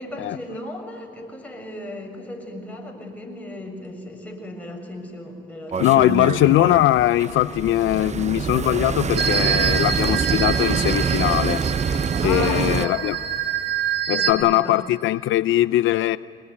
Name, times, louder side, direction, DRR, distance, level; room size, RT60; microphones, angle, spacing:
voice 1, 0.0-6.2 12.2-13.0 14.1-14.7, left 1 dB, 5° left, 6.9 m, -35 dB
sound 1, 5.7-12.9, right 6 dB, 35° right, 0.8 m, -25 dB
voice 2, 5.8-11.6 12.2-13.1 14.1-16.2, left 14 dB, 80° left, 0.6 m, -20 dB
sound 2, 9.2-14.3, right 8 dB, 65° right, 2.7 m, -26 dB
24.5 x 20.0 x 9.6 m
cardioid pair, 90°, 20 cm